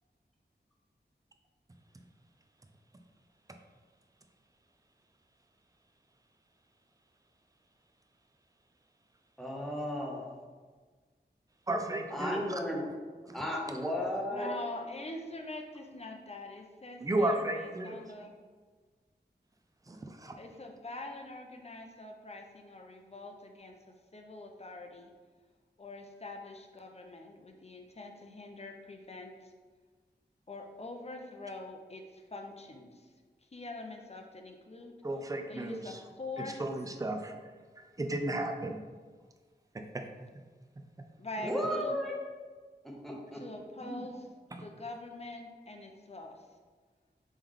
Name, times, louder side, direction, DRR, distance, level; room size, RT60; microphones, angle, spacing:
voice 1, 9.4-10.3 12.1-12.9 13.3-14.5 41.4-42.2 42.8-43.4 43.8-44.0, equal, ahead, -1 dB, 0.8 m, -34 dB
voice 2, 11.7-12.6 13.3-13.4 17.0-18.0 19.9-20.4 35.0-36.0 36.4-37.4 37.8-38.8 39.7-40.0, right 1 dB, 20° right, 5 dB, 0.4 m, -34 dB
voice 3, 14.3-18.4 20.4-23.7 24.1-25.1 25.8-29.5 30.5-33.1 33.5-34.9 35.5-36.6 41.2-42.0 43.3-44.3 44.6-46.4, left 2 dB, 35° left, 3 dB, 0.5 m, -44 dB
3.4 x 3.1 x 3.6 m, 1.4 s
wide cardioid pair, 50°, 18 cm